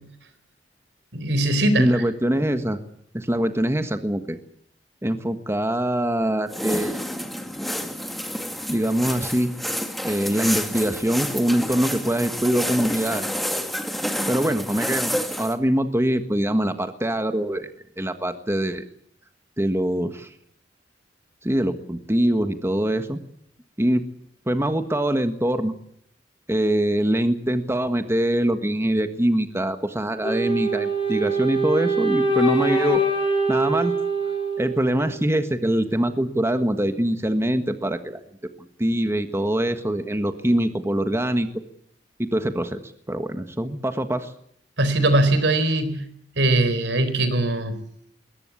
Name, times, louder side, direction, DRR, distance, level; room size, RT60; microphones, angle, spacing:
voice 1, 1.1-2.0 44.8-46.1 46.4-47.8, right 1 dB, 75° right, 12 dB, 4.2 m, -21 dB
voice 2, 1.8-2.8 3.1-4.4 5.0-7.0 8.7-9.5 10.0-13.3 14.3-15.1 15.4-17.7 18.0-18.8 19.6-20.3 21.4-23.2 23.8-24.0 24.5-25.7 26.5-33.0 33.5-33.9 34.6-38.2 38.6-41.5 42.2-42.8 43.1-44.3, right 1 dB, 15° right, 8 dB, 1.4 m, -23 dB
sound 1, 6.5-15.5, equal, ahead, 2.3 m, -29 dB
Wind instrument woodwind instrument, 30.2-35.3, right 2 dB, 30° left, 6.1 m, -24 dB
22.0 x 19.0 x 8.5 m, 0.70 s
head